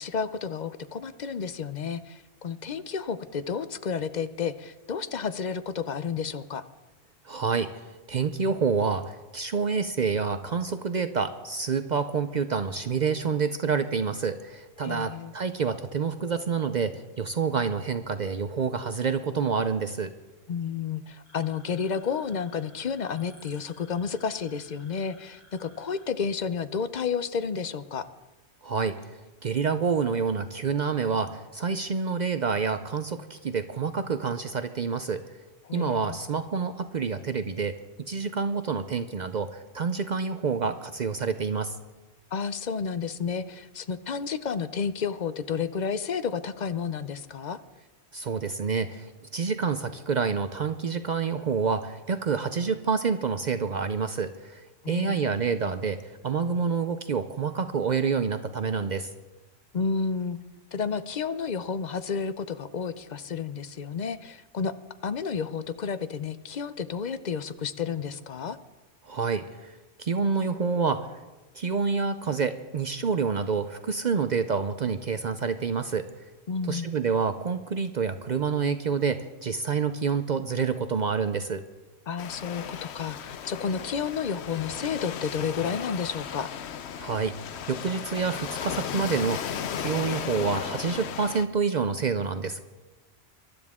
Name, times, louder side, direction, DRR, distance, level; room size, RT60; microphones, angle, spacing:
voice 1, 0.0-6.6 14.8-15.3 20.5-28.1 35.6-36.2 42.3-47.6 54.8-55.4 59.7-60.4 60.7-64.7 65.0-68.6 76.5-76.9 82.1-86.5, left 6 dB, 50° left, 12 dB, 0.7 m, -31 dB
voice 2, 7.2-20.1 28.6-29.1 29.4-35.2 35.7-37.8 38.1-41.8 48.1-59.1 69.0-71.1 71.5-76.1 76.7-81.6 87.0-87.4 87.7-92.6, right 5 dB, 50° right, 10 dB, 0.6 m, -28 dB
sound 1, 21.2-26.0, equal, 10° right, 4.4 m, -57 dB
Waves surf, 82.2-91.4, left 8 dB, 85° left, 1.0 m, -35 dB
23.0 x 12.0 x 3.6 m, 1.2 s
omnidirectional pair, 1.1 m